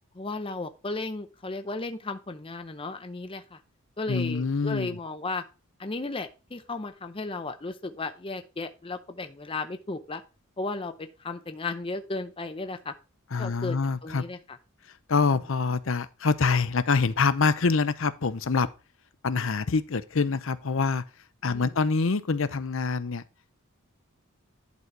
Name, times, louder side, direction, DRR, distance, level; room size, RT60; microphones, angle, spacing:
voice 1, 0.1-3.6 4.0-5.4 5.8-10.2 10.6-12.9 13.4-13.8 14.0-14.4 21.4-21.7, left 3 dB, 25° left, 0.6 m, -34 dB
voice 2, 4.1-5.0 13.3-14.2 15.1-18.7 19.2-21.0 21.4-23.2, left 4 dB, 60° left, 0.6 m, -25 dB
11.0 x 4.1 x 4.6 m
head